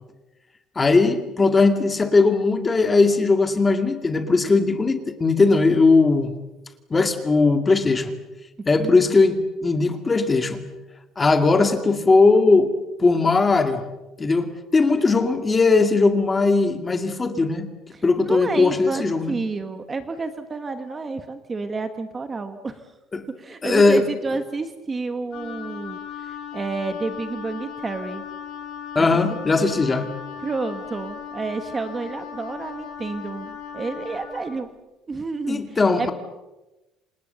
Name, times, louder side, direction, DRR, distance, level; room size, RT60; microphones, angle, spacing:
voice 1, 0.8-6.3 6.9-8.1 8.7-10.6 11.2-12.7 13.0-13.8 14.2-17.7 18.0-19.4 23.1-23.2 23.6-24.0 29.0-30.1 35.5-36.1, left 3 dB, 15° left, 7 dB, 2.2 m, -19 dB
voice 2, 8.8-9.2 17.9-22.9 23.4-28.2 29.0-29.1 30.4-34.7 35.1-36.1, right 3 dB, 20° right, 9 dB, 1.3 m, -30 dB
Wind instrument woodwind instrument, 25.3-34.5, left 7 dB, 50° left, 7.9 m, -37 dB
28.5 x 26.5 x 6.9 m, 1.0 s
cardioid pair, 175°, 0 cm